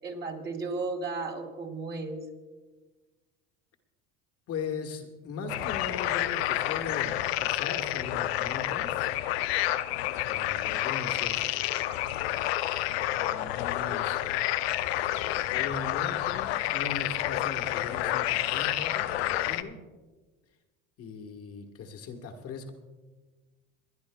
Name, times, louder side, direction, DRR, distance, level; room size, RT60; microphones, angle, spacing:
voice 1, 0.0-2.2, right 3 dB, 35° right, 1 dB, 3.4 m, -34 dB
voice 2, 4.5-9.1 10.2-11.6 13.1-14.2 15.5-19.8 21.0-22.7, left 4 dB, 50° left, 3 dB, 1.5 m, -39 dB
sound 1, 5.5-19.6, left 14 dB, 85° left, 0.6 m, -29 dB
28.5 x 10.5 x 2.3 m, 1.3 s
supercardioid pair, 90°, 31 cm